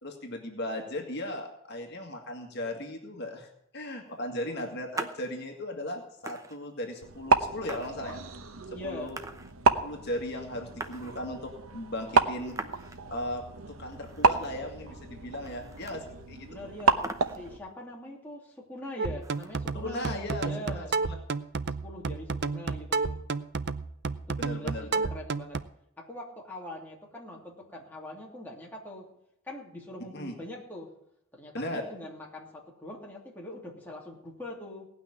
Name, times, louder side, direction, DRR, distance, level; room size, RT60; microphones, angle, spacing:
voice 1, 0.0-3.5 3.7-8.2 8.8-9.2 9.8-12.6 13.1-13.4 13.7-16.5 19.7-21.2 24.4-25.1 30.1-30.4 31.5-31.8, left 1 dB, 50° left, 2 dB, 2.0 m, -37 dB
sound 1, 4.9-5.3 5.8-5.9 6.2-7.0 7.6-8.6 9.1-9.8 10.1-10.2 10.4-11.6 12.4-13.1 13.5-13.6 13.9-14.7 15.0-15.1 15.3-16.2 16.5-16.6 16.8-17.7 19.2-19.8, right 3 dB, 15° right, 0.8 m, -42 dB
sound 2, 7.0-17.6, right 4 dB, 80° right, 1.0 m, -30 dB
voice 2, 8.7-9.2 16.5-21.0 21.8-23.2 24.3-25.6 26.0-29.1 29.4-30.9 31.3-34.9, left 1 dB, 10° left, -3 dB, 2.7 m, -42 dB
sound 3, 19.0-25.6, right 4 dB, 50° right, 0.6 m, -31 dB
18.0 x 6.2 x 9.8 m, 0.78 s
head